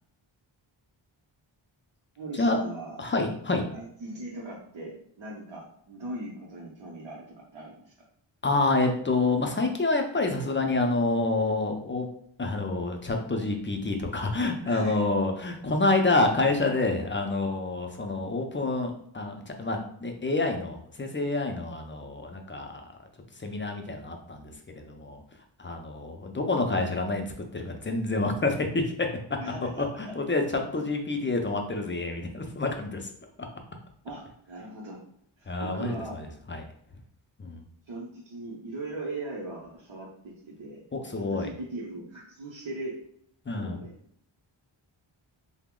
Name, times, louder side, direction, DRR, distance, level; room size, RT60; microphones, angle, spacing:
voice 1, 2.2-3.0 3.7-7.9 14.6-15.1 26.4-26.6 29.4-30.1 30.8-30.9 34.0-35.1 35.4-36.2 37.9-40.8 41.2-43.0 43.5-43.9, right 2 dB, 65° right, -4 dB, 0.7 m, -39 dB
voice 2, 3.0-3.6 8.4-12.1 12.4-22.9 23.4-25.2 25.6-27.2 27.5-29.2 29.8-33.1 35.5-36.6 37.4-37.6 40.9-41.5 43.5-43.8, left 2 dB, 25° left, 3 dB, 0.4 m, -28 dB
2.8 x 2.1 x 3.6 m, 0.67 s
wide cardioid pair, 75°, 49 cm